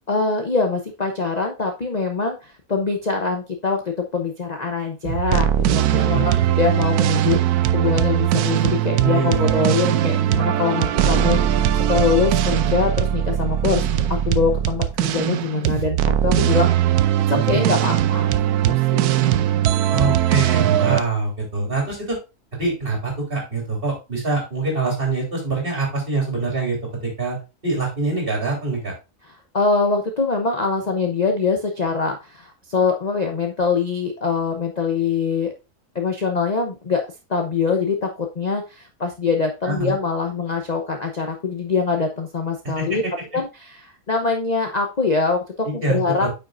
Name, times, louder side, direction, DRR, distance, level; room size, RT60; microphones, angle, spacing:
voice 1, 0.1-18.3 18.7-19.3 29.5-35.5 35.9-37.0 37.3-43.0 43.3-43.8 44.1-46.3, left 4 dB, 35° left, 3 dB, 0.8 m, -23 dB
sound 1, 5.0-21.0, right 11 dB, 85° right, 1.1 m, -20 dB
voice 2, 5.9-6.5 9.1-9.5 19.9-22.2 22.5-27.4 27.6-28.9 39.6-39.9 42.8-43.0 45.6-46.3, right 3 dB, 35° right, 0 dB, 3.4 m, -24 dB
9.1 x 5.7 x 2.5 m, 0.27 s
omnidirectional pair, 1.6 m